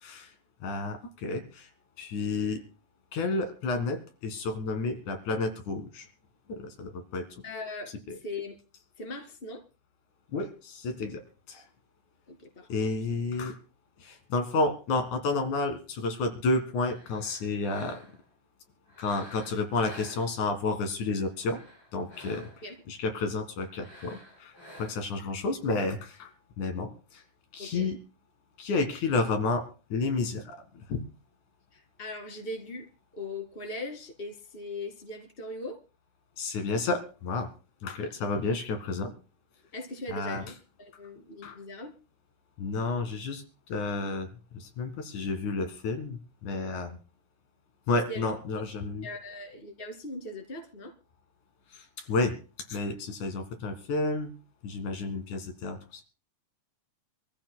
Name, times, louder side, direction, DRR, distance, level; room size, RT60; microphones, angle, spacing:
voice 1, 0.6-1.7 2.0-2.6 3.1-6.1 6.5-7.3 10.3-11.6 12.7-13.5 14.0-18.0 19.0-21.6 21.9-22.5 22.9-24.5 24.8-26.0 26.6-27.2 27.5-28.0 28.6-30.6 30.9-31.0 36.4-37.5 37.8-39.1 40.1-40.4 41.4-41.5 42.6-43.4 43.7-44.3 44.5-47.0 47.9-49.1 51.7-52.4 52.7-54.3 54.6-56.0, left 3 dB, 75° left, 6 dB, 3.2 m, -31 dB
voice 2, 7.4-8.6 9.0-9.6 12.3-12.9 22.6-22.8 25.2-25.3 25.8-25.9 27.6-27.9 31.7-32.9 33.1-35.8 39.7-40.5 40.8-41.9 48.1-48.3 49.0-50.9, left 2 dB, 20° left, 4 dB, 2.1 m, -40 dB
sound 1, 16.8-18.3 18.9-20.7 21.3-22.8 23.7-25.2, equal, 40° left, 7.6 m, -51 dB
26.5 x 14.5 x 2.2 m, 0.34 s
omnidirectional pair, 3.5 m